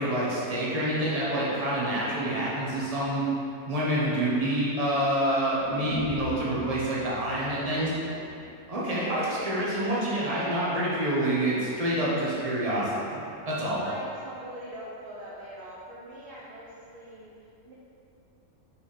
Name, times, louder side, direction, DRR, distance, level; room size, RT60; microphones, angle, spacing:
voice 1, 0.0-3.2 3.6-7.9 8.7-13.2 13.4-13.9, right 1 dB, 30° right, -7 dB, 1.2 m, -27 dB
sound 1, 5.6-9.6 9.9-10.0, equal, 80° right, 1.9 m, -42 dB
voice 2, 7.5-8.5 9.3-10.7 13.8-17.3 17.6-17.7, right 1 dB, 50° right, -7 dB, 0.9 m, -43 dB
5.3 x 4.6 x 4.3 m, 2.7 s
omnidirectional pair, 1.5 m